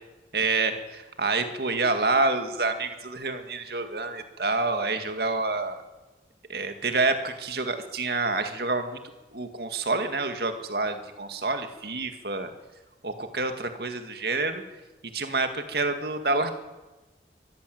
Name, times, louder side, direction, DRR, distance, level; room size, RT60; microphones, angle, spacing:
voice 1, 0.3-5.8 6.5-9.0 9.3-12.5 13.0-14.6 15.1-16.5, right 3 dB, 60° right, 7 dB, 2.1 m, -28 dB
23.5 x 14.5 x 7.9 m, 1.1 s
head